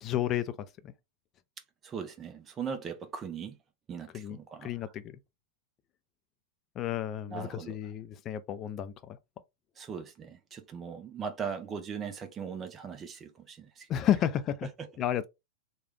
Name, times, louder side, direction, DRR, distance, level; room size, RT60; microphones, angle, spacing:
voice 1, 0.0-0.5 0.8-0.9 4.1-5.2 6.8-9.2 13.9-14.7 15.0-15.3, left 11 dB, 30° left, 0.4 m, -31 dB
voice 2, 1.8-3.6 3.9-4.9 7.3-7.8 9.8-13.9 14.6-14.9, right 6 dB, 25° right, 0.7 m, -39 dB
3.1 x 2.3 x 3.2 m
figure-of-eight pair, 95°, 0 cm